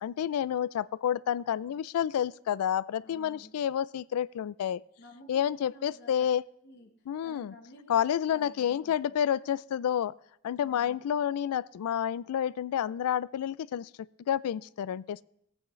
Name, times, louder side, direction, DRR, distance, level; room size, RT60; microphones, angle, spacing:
voice 1, 0.0-4.8 5.3-6.4 7.1-7.5 7.9-10.1 10.4-13.9 14.3-15.2, left 9 dB, 85° left, 20 dB, 0.3 m, -29 dB
voice 2, 3.0-3.5 5.0-6.3 6.6-9.0 10.6-11.0, left 1 dB, 50° left, 0 dB, 1.0 m, -53 dB
19.0 x 8.5 x 3.1 m, 0.76 s
head